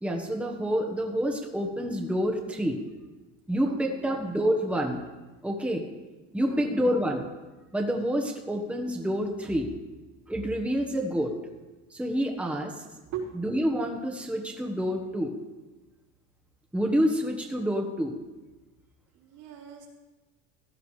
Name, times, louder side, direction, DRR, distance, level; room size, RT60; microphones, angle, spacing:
voice 1, 0.0-2.8 3.5-5.0 5.4-5.8 6.3-7.3 7.7-9.7 10.3-11.3 11.9-12.8 13.3-15.3 16.7-18.1, equal, 5° right, 1 dB, 1.3 m, -28 dB
voice 2, 3.6-4.2 6.4-6.7 13.0-13.3 19.1-19.9, right 7 dB, 75° right, -4 dB, 5.1 m, -40 dB
16.5 x 12.0 x 3.3 m, 1.2 s
cardioid pair, 125°, 31 cm